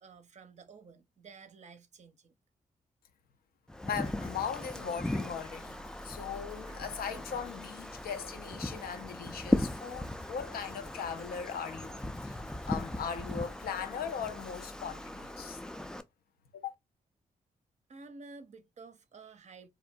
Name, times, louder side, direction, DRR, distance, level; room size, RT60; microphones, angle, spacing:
voice 1, 0.0-2.4 17.9-19.7, right 4 dB, 45° right, 0.5 m, -52 dB
Wind, 3.7-16.0, left 1 dB, 5° left, 0.3 m, -38 dB
voice 2, 3.8-5.8 6.0-15.6 16.5-16.7, left 7 dB, 65° left, 0.5 m, -39 dB
sound 1, 4.0-14.7, left 2 dB, 85° left, 1.3 m, -61 dB
2.5 x 2.0 x 2.5 m
hypercardioid pair, 40°, 17 cm